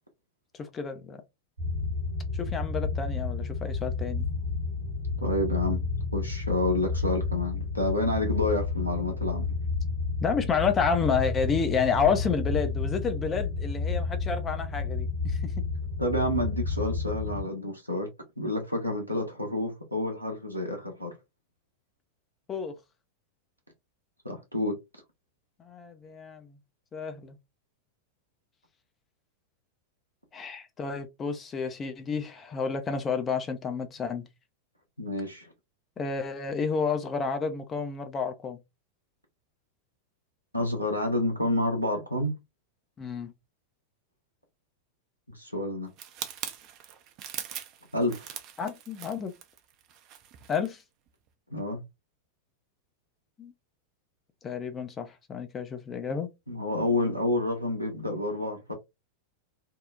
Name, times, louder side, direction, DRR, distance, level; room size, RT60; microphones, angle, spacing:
voice 1, 0.6-1.2 2.4-4.3 10.2-15.6 22.5-22.7 25.6-26.5 26.9-27.4 30.3-34.3 36.0-38.6 43.0-43.3 48.6-49.3 50.5-50.8 53.4-53.5 54.4-56.3, left 5 dB, 20° left, 0.4 m, -30 dB
sound 1, 1.6-17.4, left 4 dB, 75° right, 1.1 m, -31 dB
voice 2, 5.2-5.8 6.1-9.6 16.0-18.1 18.4-21.1 24.2-24.8 35.0-35.5 40.5-42.3 45.3-45.9 47.9-48.3 51.5-51.8 56.5-58.7, left 1 dB, 90° left, 0.6 m, -29 dB
sound 2, 46.0-50.7 51.1-51.3, right 10 dB, 40° right, 0.4 m, -41 dB
2.7 x 2.0 x 2.3 m
figure-of-eight pair, 90°, 0 cm